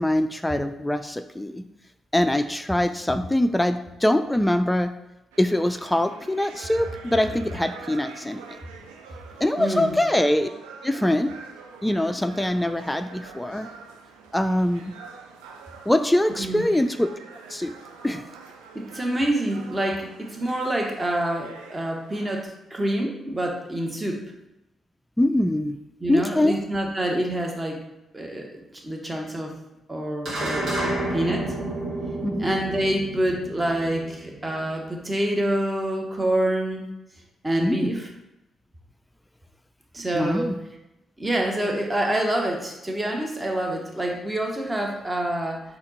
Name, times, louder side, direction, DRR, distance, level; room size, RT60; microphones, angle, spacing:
voice 1, 0.0-1.6 2.1-4.9 5.4-8.4 9.4-10.5 10.8-11.3 11.8-13.7 14.3-14.8 15.9-17.1 17.5-17.7 18.0-18.2 25.2-25.8 26.1-26.6 32.2-32.5 37.6-37.9 40.1-40.6, left 1 dB, 10° left, 8 dB, 0.3 m, -23 dB
sound 1, 5.3-22.5, right 5 dB, 85° right, 0.4 m, -45 dB
voice 2, 9.6-9.9 16.4-16.6 18.7-24.2 26.0-27.8 28.1-29.5 29.9-30.8 31.1-31.5 32.4-36.8 37.4-38.1 39.9-40.5 41.2-45.6, right 1 dB, 25° right, 1 dB, 1.1 m, -27 dB
sound 2, 30.2-34.9, right 1 dB, 65° right, 1.5 m, -30 dB
4.3 x 2.9 x 4.1 m, 0.92 s
hypercardioid pair, 45°, 0 cm